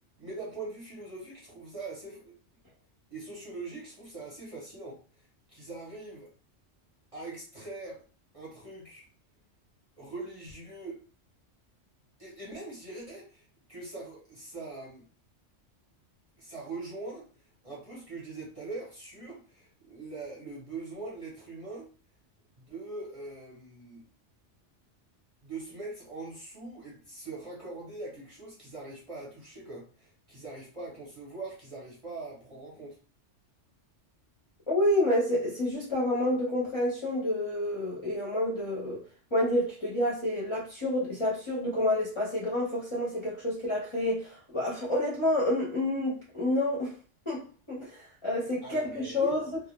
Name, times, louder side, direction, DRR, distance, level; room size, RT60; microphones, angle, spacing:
voice 1, 0.2-2.4 3.1-6.3 7.1-8.0 8.3-9.1 10.0-11.0 12.2-13.4 13.7-15.1 16.4-17.3 17.6-21.9 22.6-24.1 25.4-33.0 48.6-49.4, right 3 dB, 35° right, 0.8 m, -42 dB
voice 2, 34.7-39.0 39.3-46.9 47.3-47.4 47.7-49.6, left 1 dB, 30° left, 0.6 m, -29 dB
2.1 x 2.1 x 3.0 m
omnidirectional pair, 1.2 m